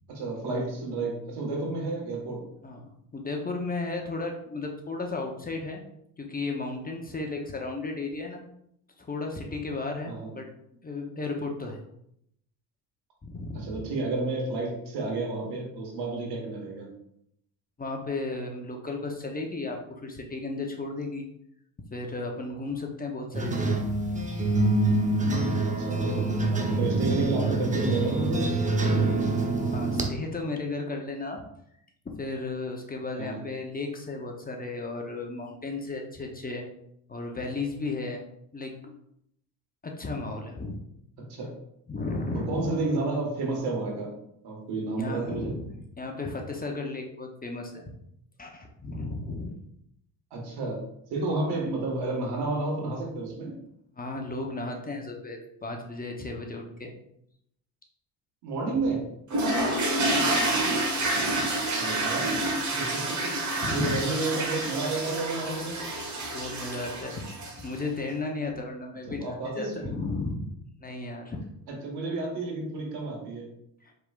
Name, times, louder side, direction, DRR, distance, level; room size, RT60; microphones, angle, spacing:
voice 1, 0.1-2.4 10.0-10.3 13.5-16.9 25.7-28.5 28.8-29.5 33.2-33.4 41.3-41.5 42.3-44.1 44.4-45.6 50.3-50.8 51.1-53.5 58.4-59.0 61.7-62.4 62.8-65.8 69.1-69.9 71.7-73.5, right 3 dB, 70° right, -1 dB, 1.6 m, -31 dB
voice 2, 3.1-5.8 6.2-8.4 9.0-10.4 10.8-11.8 13.2-13.8 17.8-19.8 20.0-21.2 21.9-24.2 29.7-31.4 32.0-36.6 37.1-38.2 38.5-38.9 39.8-40.8 41.9-42.7 45.0-47.8 48.4-49.6 54.0-56.9 59.6-60.3 63.1-64.0 66.2-67.2 67.6-70.5 70.8-71.4 73.8-73.9, left 3 dB, 20° left, 2 dB, 0.8 m, -34 dB
sound 1, 23.3-30.1, right 2 dB, 20° right, 0.7 m, -26 dB
sound 2, 59.3-67.8, right 2 dB, 45° right, 1.3 m, -28 dB
4.6 x 3.6 x 2.5 m, 0.74 s
supercardioid pair, 70°, 41 cm